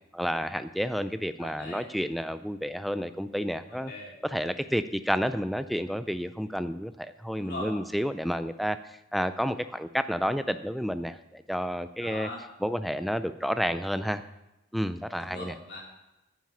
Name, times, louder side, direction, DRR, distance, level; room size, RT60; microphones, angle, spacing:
voice 1, 0.1-3.9 4.2-8.8 9.1-12.3 12.6-14.2 14.7-15.5, equal, ahead, 11 dB, 0.3 m, -30 dB
voice 2, 1.4-1.8 3.7-4.1 7.3-7.7 12.0-12.4 15.2-15.8, left 2 dB, 50° left, -3 dB, 3.4 m, -40 dB
9.7 x 9.3 x 5.6 m, 0.95 s
head